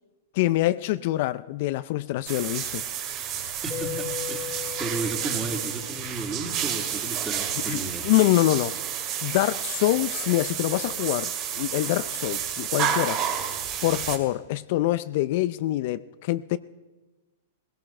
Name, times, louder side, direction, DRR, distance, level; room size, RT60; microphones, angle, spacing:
voice 1, 0.3-2.8 7.7-8.8 9.2-13.2 13.8-16.6, left 16 dB, 55° left, 0.4 m, -25 dB
sound 1, 2.3-14.2, right 9 dB, 40° right, 2.2 m, -30 dB
voice 2, 3.6-8.1, right 3 dB, 15° right, 2.4 m, -34 dB
Keyboard (musical), 3.7-6.2, left 14 dB, 15° left, 2.0 m, -37 dB
18.5 x 17.0 x 4.4 m
hypercardioid pair, 125°, 0 cm